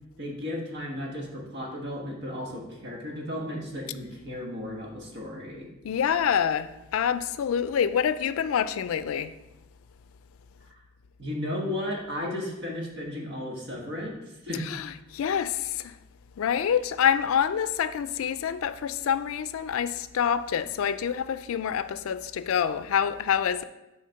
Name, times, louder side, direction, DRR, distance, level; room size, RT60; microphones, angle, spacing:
voice 1, 0.2-5.7 11.2-14.2 14.4-14.7, left 1 dB, 55° right, 1.4 m, -34 dB
voice 2, 5.8-9.3 14.5-16.0 16.4-23.6, left 8 dB, 80° left, 0.3 m, -27 dB
6.4 x 3.8 x 5.7 m
head